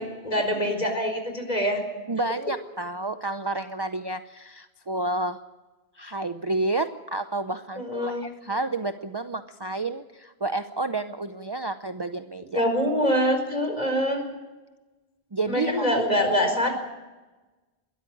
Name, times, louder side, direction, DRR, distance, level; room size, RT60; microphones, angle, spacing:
voice 1, 0.0-1.8 7.8-8.2 12.5-14.2 15.5-16.7, equal, 40° left, 4 dB, 4.7 m, -24 dB
voice 2, 2.1-5.4 6.0-12.7 15.3-16.0, right 2 dB, 30° right, 9 dB, 0.6 m, -30 dB
21.5 x 13.5 x 10.0 m, 1.2 s
omnidirectional pair, 1.0 m